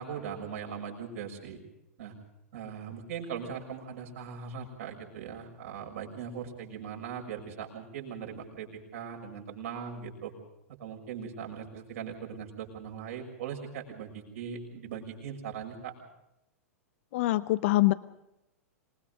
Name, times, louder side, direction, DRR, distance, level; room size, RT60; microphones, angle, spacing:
voice 1, 0.0-1.6 2.0-2.1 2.5-8.7 8.9-10.3 10.8-15.9, right 7 dB, 65° right, 1 dB, 6.6 m, -40 dB
voice 2, 17.1-17.9, left 18 dB, 55° left, 15 dB, 0.8 m, -24 dB
27.0 x 21.5 x 5.2 m, 0.87 s
figure-of-eight pair, 100°, 8 cm